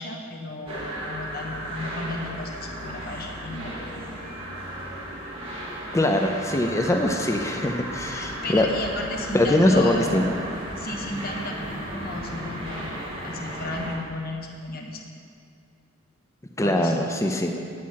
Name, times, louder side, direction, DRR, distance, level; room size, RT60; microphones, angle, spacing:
voice 1, 0.0-4.1 8.1-10.2 10.8-15.0 16.6-17.0, left 2 dB, 50° left, 1 dB, 1.0 m, -34 dB
sound 1, 0.7-14.0, right 1 dB, 30° right, 2.3 m, -35 dB
voice 2, 5.9-8.7 9.3-10.2 16.6-17.6, left 1 dB, 15° left, 4 dB, 0.5 m, -22 dB
8.6 x 8.6 x 5.7 m, 2.4 s
head